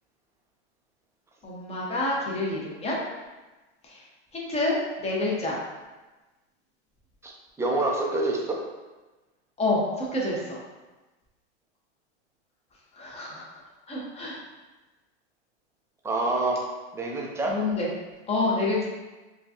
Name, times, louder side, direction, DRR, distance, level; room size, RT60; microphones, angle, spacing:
voice 1, 1.4-3.0 3.8-4.0 4.3-4.7 5.0-5.6 9.6-10.6 13.0-13.4 13.9-14.4 17.5-17.9 18.3-18.8, left 2 dB, 20° left, -3 dB, 0.9 m, -28 dB
voice 2, 7.6-8.6 16.0-16.7 16.9-17.5, right 2 dB, 10° right, -1 dB, 0.5 m, -26 dB
5.1 x 2.3 x 2.8 m, 1.2 s
hypercardioid pair, 120°, 35 cm